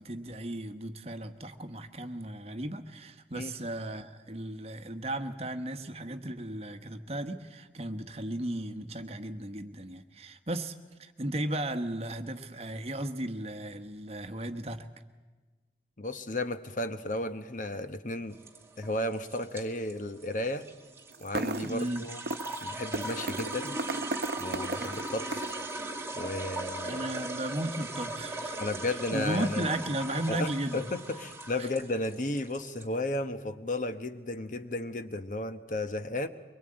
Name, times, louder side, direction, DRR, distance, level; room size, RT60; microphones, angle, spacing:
voice 1, 0.0-10.7 11.0-14.9 21.6-22.0 26.8-28.6 28.9-30.9 31.6-31.7, right 1 dB, 35° right, 9 dB, 1.2 m, -35 dB
voice 2, 16.0-18.4 18.8-20.7 21.2-22.2 22.6-23.8 24.4-25.4 26.2-27.0 28.6-29.7 30.3-36.3, left 1 dB, 45° left, 10 dB, 1.0 m, -34 dB
sound 1, 18.3-32.8, right 2 dB, 15° right, 2.1 m, -39 dB
sound 2, 21.1-21.8 22.3-22.6 22.9-25.6, right 2 dB, 60° right, 1.0 m, -35 dB
24.0 x 22.0 x 8.8 m, 1.3 s
head